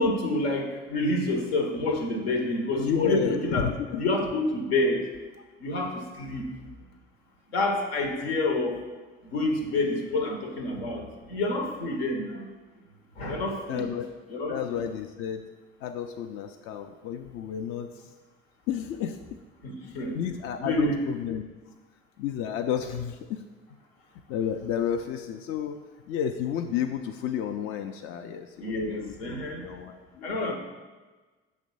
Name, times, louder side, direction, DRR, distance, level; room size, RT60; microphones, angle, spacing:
voice 1, 0.0-3.7 4.0-5.0 5.6-6.5 7.5-8.8 9.2-12.5 13.2-13.9 14.3-14.8 19.6-20.2 20.6-21.0 28.6-29.6 30.2-30.5, left 2 dB, 75° left, 3 dB, 0.9 m, -28 dB
voice 2, 2.8-4.0 13.7-14.1 14.5-15.4 15.8-18.1 18.7-19.2 19.8-21.4 22.2-23.4 24.3-29.1 29.6-30.5, left 8 dB, 45° left, 6 dB, 0.4 m, -31 dB
6.5 x 3.2 x 5.3 m, 1.3 s
figure-of-eight pair, 50°, 31 cm